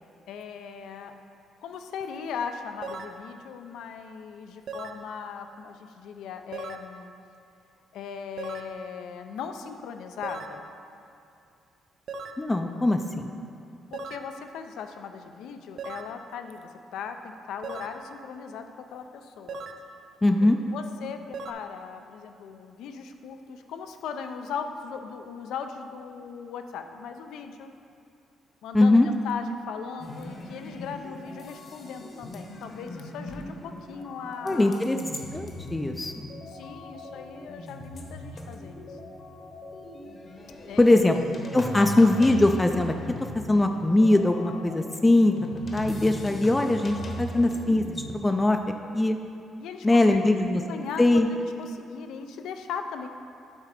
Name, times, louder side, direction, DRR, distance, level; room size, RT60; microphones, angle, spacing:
voice 1, 0.3-1.1 1.6-7.1 7.9-10.6 13.9-19.6 20.7-27.7 28.6-34.8 36.5-39.0 40.7-41.0 49.6-50.4 50.7-53.1, left 6 dB, 85° left, 7 dB, 0.4 m, -38 dB
sound 1, 2.8-3.2 4.7-5.0 6.5-6.9 8.4-8.7 10.2-10.6 12.1-12.5 13.9-14.3 15.8-16.2 17.6-18.0 19.5-19.9 21.3-21.5, right 3 dB, 60° right, 0.4 m, -38 dB
voice 2, 12.4-13.3 20.2-20.6 28.7-29.1 34.4-35.0 35.3-36.3 40.8-41.1 41.5-42.9 43.3-45.3 45.7-48.6 48.9-49.2 49.8-50.6 51.0-51.3, left 2 dB, 15° left, 5 dB, 0.3 m, -21 dB
sound 2, 30.0-48.1, left 1 dB, 45° left, 1.0 m, -40 dB
8.7 x 3.7 x 4.9 m, 2.5 s
cardioid pair, 90°, 0 cm